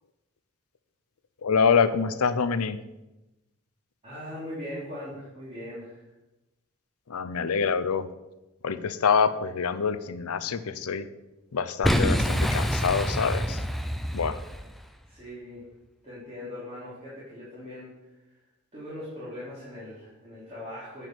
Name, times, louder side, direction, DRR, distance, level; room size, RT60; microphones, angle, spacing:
voice 1, 1.4-2.8 7.1-8.1 8.6-11.1 11.5-13.6 14.1-14.4, left 6 dB, 80° left, 13 dB, 0.6 m, -25 dB
voice 2, 4.0-6.1 15.0-15.6 16.0-17.9 18.7-21.0, left 1 dB, 25° right, -10 dB, 2.7 m, -40 dB
Boom, 11.8-14.8, equal, ahead, 0.3 m, -26 dB
9.2 x 4.9 x 5.9 m, 1.0 s
head